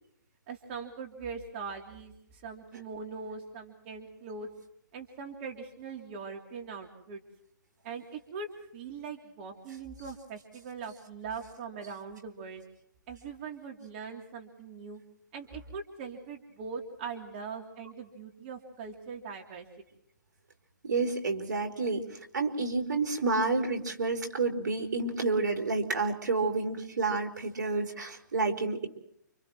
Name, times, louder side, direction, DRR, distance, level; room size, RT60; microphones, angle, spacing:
voice 1, 0.5-4.5 4.9-7.2 7.8-12.6 13.1-15.0 15.3-19.7, right 5 dB, 40° right, 2 dB, 3.2 m, -41 dB
voice 2, 20.8-28.9, right 3 dB, 75° right, 3 dB, 4.5 m, -29 dB
29.5 x 28.0 x 3.1 m, 0.75 s
hypercardioid pair, 140°, 10 cm